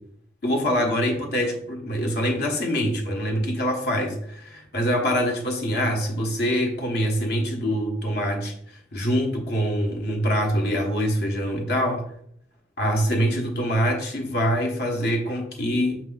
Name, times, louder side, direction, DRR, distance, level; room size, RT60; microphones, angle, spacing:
voice 1, 0.4-8.5 8.9-12.0 12.8-16.0, equal, 60° left, 1 dB, 1.3 m, -24 dB
6.0 x 5.2 x 3.9 m, 0.66 s
head